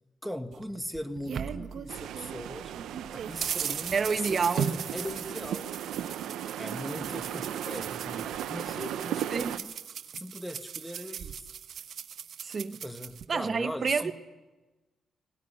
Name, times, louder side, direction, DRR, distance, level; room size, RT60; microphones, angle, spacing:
voice 1, 0.2-2.7 3.1-5.7 6.6-9.7 10.1-11.4 12.8-14.1, equal, ahead, 1.5 m, -39 dB
sound 1, 0.5-2.4 2.7-13.2, right 8 dB, 70° right, 1.1 m, -38 dB
sound 2, 1.9-9.6, right 11 dB, 90° right, 0.7 m, -37 dB
voice 2, 3.9-4.7 9.3-9.5 12.4-12.8 13.3-14.1, right 5 dB, 45° right, 0.8 m, -28 dB
19.0 x 18.0 x 10.0 m
cardioid pair, 85°, 0 cm